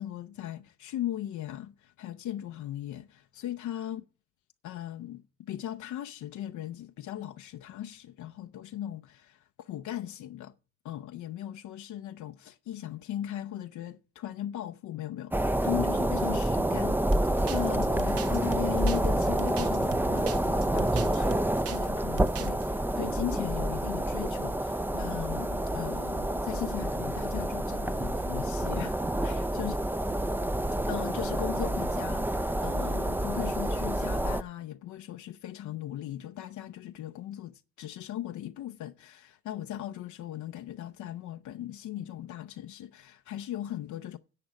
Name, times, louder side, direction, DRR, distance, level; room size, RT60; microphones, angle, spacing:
voice 1, 0.0-4.0 4.6-10.5 10.8-21.3 21.7-29.7 30.8-44.2, left 12 dB, 75° left, 0.6 m, -38 dB
sound 1, 15.3-34.4, right 1 dB, 5° right, 0.5 m, -28 dB
sound 2, 17.1-21.9 22.2-22.7, right 10 dB, 50° right, 0.7 m, -41 dB
10.5 x 5.9 x 6.2 m
cardioid pair, 90°, 30 cm